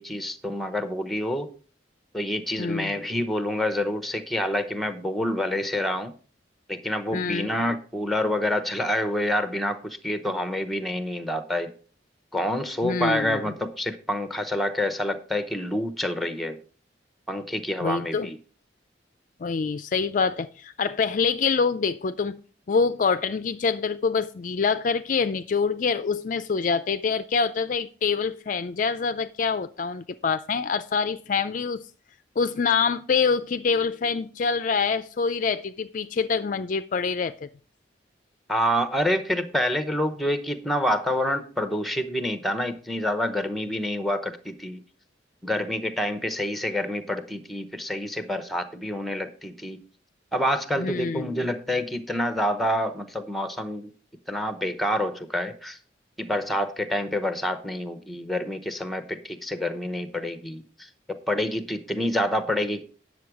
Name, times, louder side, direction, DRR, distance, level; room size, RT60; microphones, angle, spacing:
voice 1, 0.0-1.5 2.1-6.1 6.7-11.8 12.3-16.6 17.3-18.4 38.5-44.8 45.4-49.8 50.3-53.9 54.3-55.8 56.2-62.8, left 1 dB, ahead, 0.9 m, -27 dB
voice 2, 2.6-2.9 7.1-7.5 12.8-13.4 17.8-18.3 19.4-22.4 22.7-31.8 32.4-37.5 50.8-51.5, left 5 dB, 45° left, 0.4 m, -25 dB
9.4 x 6.9 x 4.7 m
head